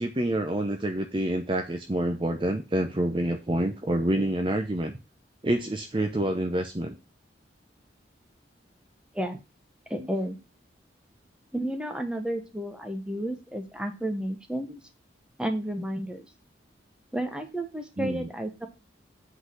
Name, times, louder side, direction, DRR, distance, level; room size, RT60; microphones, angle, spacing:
voice 1, 0.0-5.0 5.4-7.0 18.0-18.3, right 1 dB, 25° right, 5 dB, 0.7 m, -27 dB
voice 2, 9.9-10.4 11.5-14.8 15.4-16.2 17.1-18.7, right 1 dB, 5° right, 6 dB, 1.1 m, -32 dB
8.1 x 4.1 x 6.4 m, 0.29 s
head